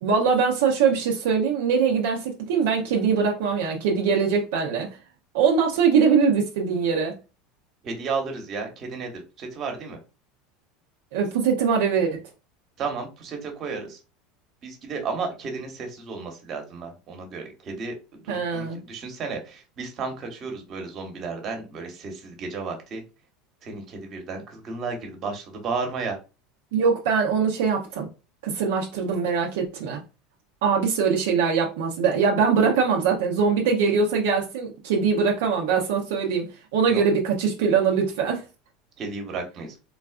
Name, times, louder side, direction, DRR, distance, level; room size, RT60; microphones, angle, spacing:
voice 1, 0.0-4.9 5.3-7.1 11.1-12.2 18.3-18.8 26.7-28.1 28.4-30.0 30.6-38.4, right 6 dB, 80° right, 0.6 m, -22 dB
voice 2, 7.8-10.0 12.8-14.0 14.6-23.0 23.6-26.2 36.9-37.0 39.0-39.7, right 4 dB, 45° right, 1.1 m, -33 dB
3.8 x 2.4 x 2.4 m
supercardioid pair, 110°, 0 cm